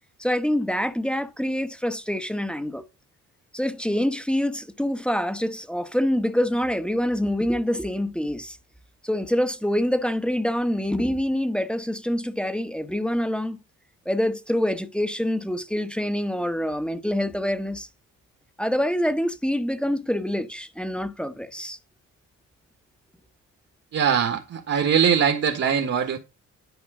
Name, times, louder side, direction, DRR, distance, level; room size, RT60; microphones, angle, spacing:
voice 1, 0.2-2.9 3.5-8.6 9.0-13.6 14.0-17.9 18.6-21.8, equal, 5° left, 1.1 m, -26 dB
voice 2, 23.9-26.2, right 7 dB, 55° right, 1.7 m, -22 dB
10.5 x 5.0 x 5.0 m
cardioid pair, 90°, 30 cm